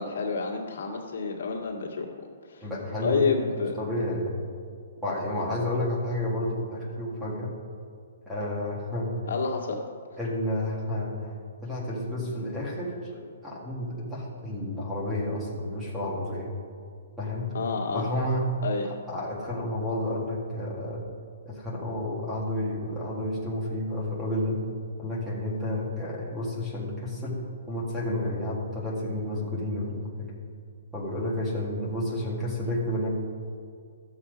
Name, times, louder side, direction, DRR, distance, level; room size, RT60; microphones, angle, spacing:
voice 1, 0.0-2.1 2.4-2.7 3.0-3.7 9.3-9.8 17.5-18.1 18.6-18.9, left 4 dB, 65° left, 0 dB, 1.9 m, -29 dB
voice 2, 2.6-3.2 3.6-4.4 5.0-7.5 8.3-9.2 10.2-11.3 11.6-16.5 17.2-17.5 17.9-18.5 19.1-21.0 21.5-24.6 25.0-27.4 27.7-30.3 30.9-33.1, left 1 dB, ahead, -5 dB, 1.7 m, -31 dB
13.5 x 7.1 x 5.1 m, 2.2 s
hypercardioid pair, 170°, 0 cm